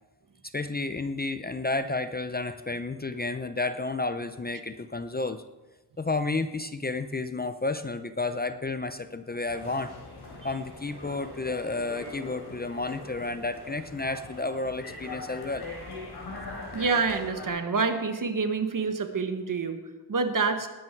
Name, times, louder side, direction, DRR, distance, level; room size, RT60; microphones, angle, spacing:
voice 1, 0.5-5.4 6.0-9.9 10.4-15.6, left 3 dB, 25° left, 10 dB, 0.6 m, -31 dB
sound 1, 9.5-17.5, left 3 dB, 70° left, 4.2 m, -41 dB
voice 2, 16.7-19.8 20.1-20.7, right 4 dB, 50° right, 7 dB, 1.5 m, -27 dB
19.5 x 12.0 x 4.6 m, 1.1 s
wide cardioid pair, 145°, 40 cm